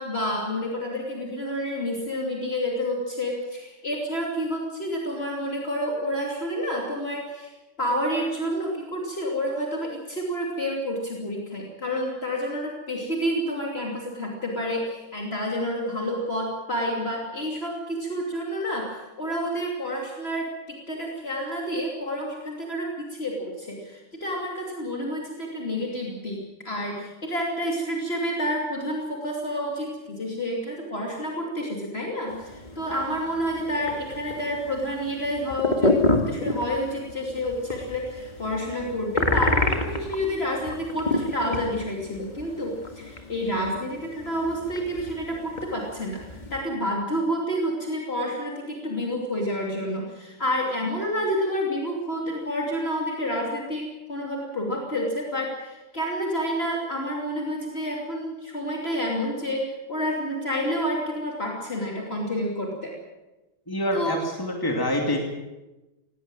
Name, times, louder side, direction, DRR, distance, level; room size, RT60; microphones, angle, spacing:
voice 1, 0.0-7.5 7.8-26.4 26.6-46.2 46.5-62.9 63.9-64.2, equal, 50° left, -1 dB, 3.2 m, -29 dB
sound 1, 32.3-46.6, left 2 dB, 35° left, 2.0 m, -30 dB
voice 2, 63.7-65.2, left 1 dB, 15° left, 1 dB, 2.7 m, -26 dB
18.0 x 18.0 x 9.0 m, 1.1 s
omnidirectional pair, 1.3 m